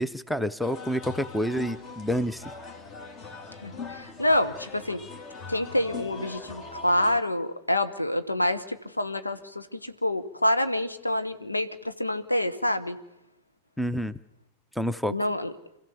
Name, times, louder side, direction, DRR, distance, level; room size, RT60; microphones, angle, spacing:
voice 1, 0.0-2.4 13.8-14.2 14.8-15.1, equal, ahead, 16 dB, 0.7 m, -28 dB
sound 1, 0.6-7.2, left 4 dB, 35° left, 2.3 m, -41 dB
voice 2, 3.6-5.0 5.5-13.0 15.1-15.5, left 1 dB, 85° left, 10 dB, 1.2 m, -27 dB
27.0 x 15.5 x 7.0 m, 0.93 s
figure-of-eight pair, 90°, 0 cm